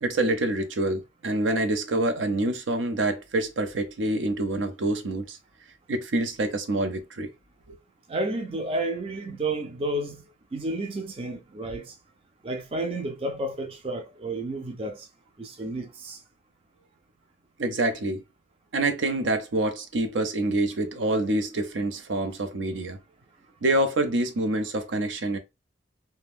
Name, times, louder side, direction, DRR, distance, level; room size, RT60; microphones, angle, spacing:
voice 1, 0.0-5.4 5.9-7.3 7.7-7.8 17.6-18.2 18.7-23.0 23.6-25.4, right 2 dB, 85° right, 0.6 m, -26 dB
voice 2, 8.1-10.2 10.5-11.9 12.4-15.1 15.4-16.2, right 2 dB, 30° right, 0.3 m, -31 dB
2.5 x 2.2 x 3.4 m
head